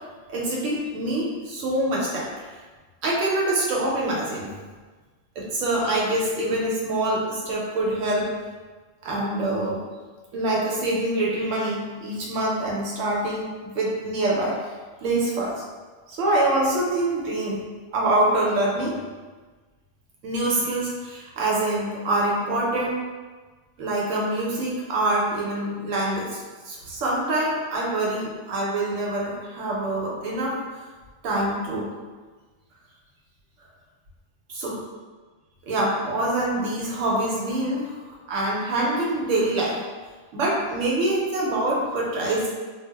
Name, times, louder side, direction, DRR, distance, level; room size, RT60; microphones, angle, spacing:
voice 1, 0.3-2.6 3.0-4.5 5.4-8.3 9.0-9.8 10.3-14.7 15.0-15.6 16.1-17.6 17.9-18.9 20.2-23.0 23.8-30.6 31.2-31.9 34.5-34.8 35.6-39.8 40.3-42.5, right 1 dB, 85° right, -4 dB, 1.0 m, -25 dB
2.4 x 2.0 x 3.3 m, 1.4 s
omnidirectional pair, 1.3 m